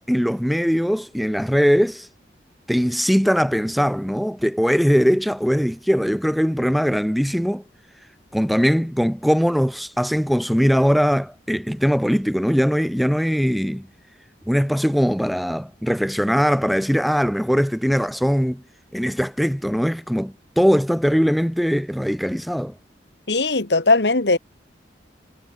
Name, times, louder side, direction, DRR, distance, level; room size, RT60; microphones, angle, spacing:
voice 1, 0.0-2.1 2.7-7.6 8.3-13.9 14.5-18.6 18.9-22.7, equal, ahead, 0.6 m, -20 dB
voice 2, 23.3-24.4, left 3 dB, 75° left, 1.9 m, -18 dB
head